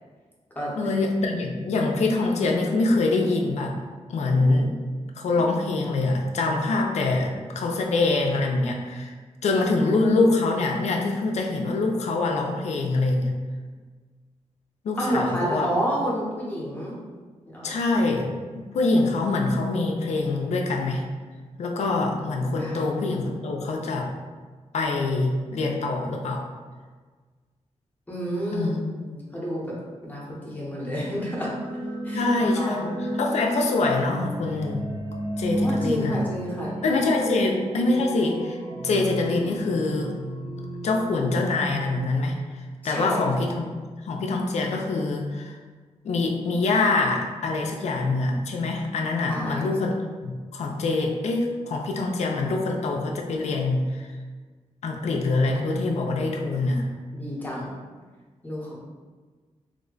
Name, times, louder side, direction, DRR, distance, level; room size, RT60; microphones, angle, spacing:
voice 1, 0.8-3.8 4.1-4.7 5.2-9.1 9.4-13.4 14.8-15.7 17.6-21.0 21.6-24.1 24.7-26.4 28.5-28.8 32.1-34.8 35.4-36.2 36.8-38.6 38.8-40.1 40.8-42.3 42.8-43.7 44.1-45.6 46.0-50.0 50.2-54.1 54.8-56.9, left 3 dB, 65° left, 1 dB, 0.4 m, -24 dB
voice 2, 15.0-16.9 17.5-17.8 22.6-22.8 28.1-28.7 29.0-29.7 30.0-31.5 32.0-32.9 35.6-36.7 37.1-37.6 42.8-43.4 49.3-49.7 57.1-57.7 58.4-58.8, equal, 15° left, -5 dB, 0.8 m, -29 dB
sound 1, 31.0-42.9, right 1 dB, 20° right, 0.7 m, -33 dB
3.1 x 2.1 x 3.8 m, 1.4 s
wide cardioid pair, 165°, 12 cm